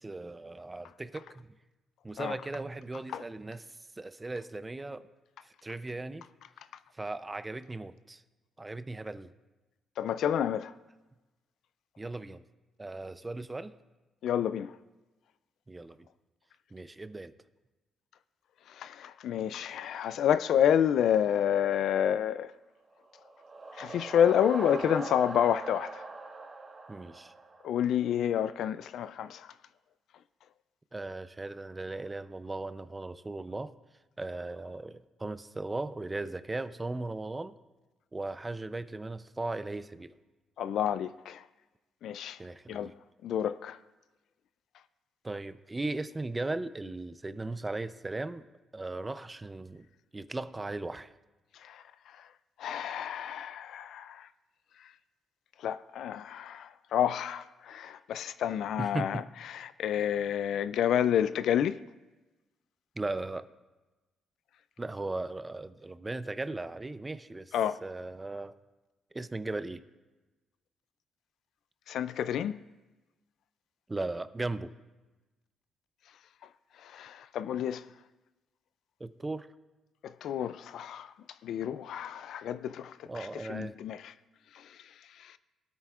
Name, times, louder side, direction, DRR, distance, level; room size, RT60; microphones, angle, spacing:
voice 1, 0.0-1.5 2.0-3.6 4.0-5.0 5.4-6.3 6.9-8.2 8.6-9.3 12.0-12.4 12.8-13.7 15.7-16.1 16.7-17.3 26.9-27.3 30.9-33.7 34.2-37.6 38.1-40.1 42.4-42.9 45.2-48.4 48.7-49.9 50.1-51.1 58.8-59.2 63.0-63.5 64.8-67.5 67.8-68.6 69.1-69.8 73.9-74.7 79.0-79.5 83.1-83.7, right 2 dB, 20° right, 0.5 m, -37 dB
voice 2, 10.0-10.7 14.2-14.7 18.7-22.5 23.7-26.1 27.6-29.5 40.6-41.4 42.0-42.4 42.7-42.9 43.2-43.8 51.6-52.3 52.6-54.3 54.8-54.9 55.6-59.2 59.5-61.8 67.5-67.8 71.9-72.5 76.8-77.8 80.0-81.1 81.4-84.1 84.5-85.4, left 9 dB, 75° left, 0.3 m, -29 dB
sound 1, 23.0-27.9, right 3 dB, 35° right, 1.4 m, -41 dB
20.0 x 8.9 x 2.4 m
cardioid pair, 90°, 0 cm